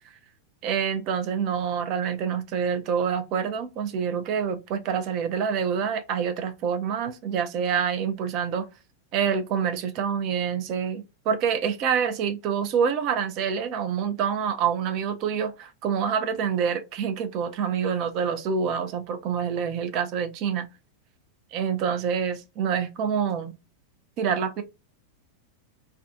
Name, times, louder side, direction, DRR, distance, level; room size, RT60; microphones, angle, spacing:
voice 1, 0.6-8.7 9.1-20.7 21.5-23.5 24.2-24.6, right 7 dB, 40° right, 0.5 m, -27 dB
2.4 x 2.3 x 2.5 m
figure-of-eight pair, 90°, 0 cm